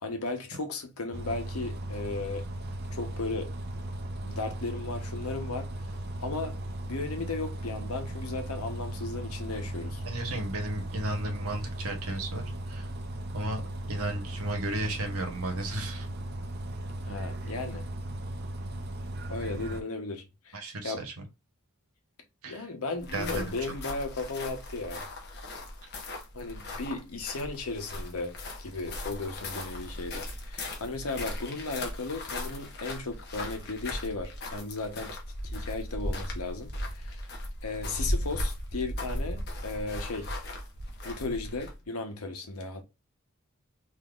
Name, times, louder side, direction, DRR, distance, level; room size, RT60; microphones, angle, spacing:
voice 1, 0.0-2.5 2.9-3.5 4.2-5.7 6.2-6.6 6.9-10.0 17.0-17.9 19.3-20.6 20.8-21.0 22.5-25.0 26.3-35.2 35.4-37.2 37.6-40.3 41.0-42.8, left 3 dB, 90° left, 1.0 m, -35 dB
Bus, 1.1-19.8, right 1 dB, 45° right, 0.5 m, -37 dB
voice 2, 10.0-12.9 13.3-13.6 13.9-16.1 20.5-21.3 22.4-22.7 23.1-23.7, right 1 dB, 85° right, 1.1 m, -34 dB
sound 1, 23.0-41.8, left 1 dB, 50° left, 0.9 m, -37 dB
3.7 x 2.8 x 2.4 m
head